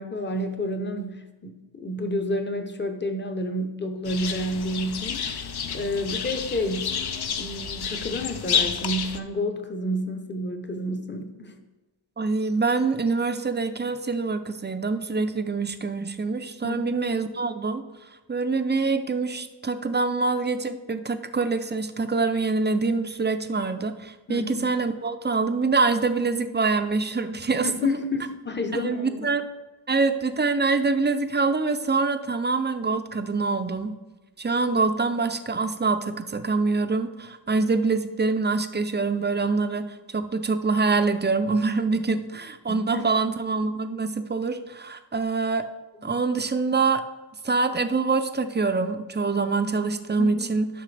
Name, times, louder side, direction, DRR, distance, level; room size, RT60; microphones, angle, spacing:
voice 1, 0.0-5.5 5.7-7.0 7.4-11.6 16.6-16.8 24.3-24.7 27.6-29.3 42.7-43.1 46.0-46.1 50.2-50.5, left 1 dB, 25° left, 6 dB, 0.8 m, -30 dB
sound 1, 4.0-9.2, left 7 dB, 60° left, 0.6 m, -30 dB
voice 2, 12.2-17.8 18.3-27.7 28.7-29.4 29.9-33.9 34.4-45.7 46.0-47.0 47.4-50.7, right 4 dB, 25° right, 9 dB, 0.4 m, -25 dB
12.0 x 5.7 x 3.3 m, 1.1 s
wide cardioid pair, 130°, 45 cm